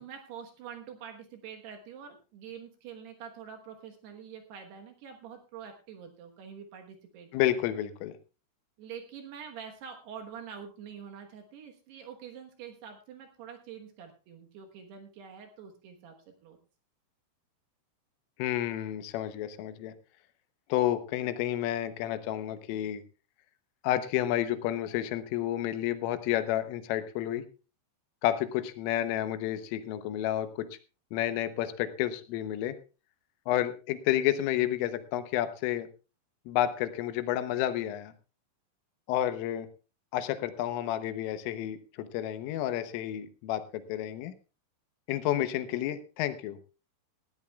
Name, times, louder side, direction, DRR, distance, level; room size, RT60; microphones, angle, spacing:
voice 1, 0.0-7.3 8.8-16.2 16.4-16.6, right 7 dB, 65° right, 4 dB, 3.0 m, -46 dB
voice 2, 7.3-8.2 18.4-19.9 20.7-23.0 23.8-27.4 28.2-30.7 31.1-32.8 33.5-35.9 36.5-38.1 39.1-39.7 40.1-44.3 45.1-46.6, left 12 dB, 85° left, 11 dB, 3.6 m, -30 dB
19.0 x 13.5 x 2.3 m, 0.32 s
omnidirectional pair, 5.7 m